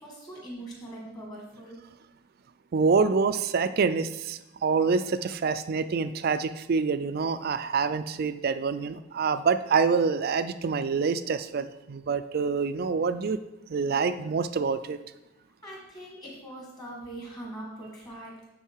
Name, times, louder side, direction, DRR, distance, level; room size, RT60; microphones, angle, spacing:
voice 1, 0.0-1.8 15.6-18.3, right 1 dB, 20° left, -2 dB, 1.9 m, -42 dB
voice 2, 2.7-13.4 13.7-15.0, right 5 dB, 50° right, 12 dB, 0.4 m, -26 dB
10.5 x 3.9 x 4.6 m, 1.0 s
head